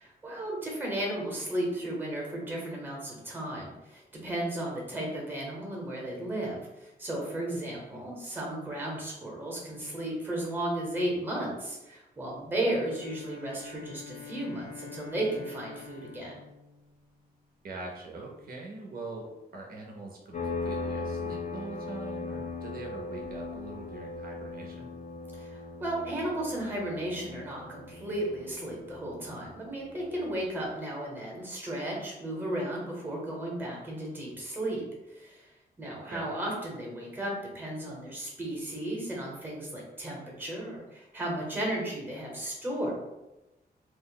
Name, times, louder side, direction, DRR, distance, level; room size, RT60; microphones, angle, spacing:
voice 1, 0.0-16.4 25.3-34.8 35.1-42.9, right 1 dB, 10° right, -2 dB, 0.7 m, -34 dB
Bowed string instrument, 12.7-17.5, left 6 dB, 85° left, 1.2 m, -47 dB
voice 2, 17.6-25.0 36.0-36.3, right 2 dB, 65° right, 0 dB, 0.5 m, -43 dB
sound 1, 20.3-30.7, left 3 dB, 45° left, 0.4 m, -39 dB
2.4 x 2.0 x 3.8 m, 0.98 s
wide cardioid pair, 160°, 17 cm